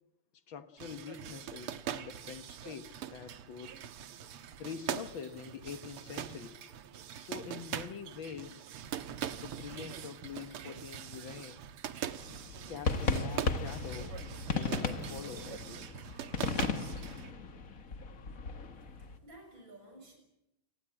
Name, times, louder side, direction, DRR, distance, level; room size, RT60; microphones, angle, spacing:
voice 1, 0.5-3.7 4.6-6.6 7.2-8.6 9.4-11.6 12.7-14.2 14.5-15.9, left 7 dB, 65° left, 10 dB, 1.9 m, -45 dB
sound 1, 0.8-17.3, right 10 dB, 85° right, 2.1 m, -42 dB
sound 2, 12.2-19.2, left 4 dB, 40° left, 1.8 m, -36 dB
voice 2, 18.7-20.2, right 1 dB, 55° right, 3 dB, 7.3 m, -54 dB
30.0 x 19.0 x 8.8 m, 0.86 s
omnidirectional pair, 2.4 m